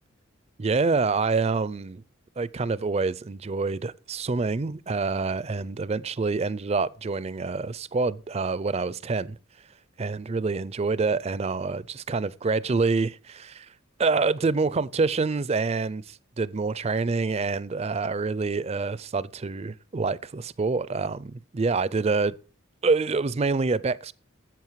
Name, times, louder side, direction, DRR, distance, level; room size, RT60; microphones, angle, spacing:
voice 1, 0.6-2.0 2.4-9.4 10.0-13.7 14.0-22.4 22.8-24.1, right 4 dB, 30° right, 0.4 m, -26 dB
10.5 x 7.8 x 4.7 m
head